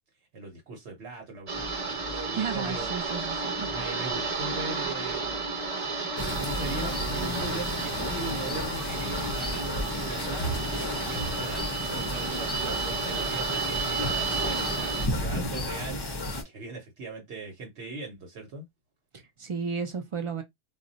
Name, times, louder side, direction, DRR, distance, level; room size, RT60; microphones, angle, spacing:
voice 1, 0.3-2.9 3.7-5.4 6.4-11.6 11.9-18.6, right 2 dB, 70° right, 1.0 m, -40 dB
sound 1, 1.5-15.1, right 4 dB, 40° right, 0.7 m, -32 dB
voice 2, 2.4-3.7 19.1-20.4, right 5 dB, 55° right, 0.3 m, -33 dB
sound 2, 6.2-16.4, left 1 dB, 35° left, 0.4 m, -33 dB
2.2 x 2.1 x 3.8 m
omnidirectional pair, 1.2 m